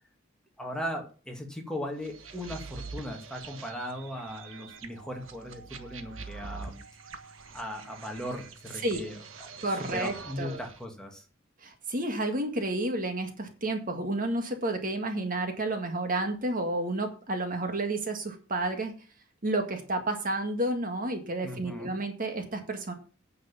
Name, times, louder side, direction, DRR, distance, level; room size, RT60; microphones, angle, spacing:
voice 1, 0.6-6.8 7.5-11.2 21.4-21.9, equal, 5° left, 1 dB, 2.2 m, -38 dB
sound 1, 2.0-10.8, right 4 dB, 80° right, 1.5 m, -45 dB
voice 2, 9.6-10.6 11.6-18.9 19.4-22.9, right 2 dB, 45° right, 5 dB, 1.8 m, -31 dB
9.6 x 6.7 x 7.0 m, 0.36 s
head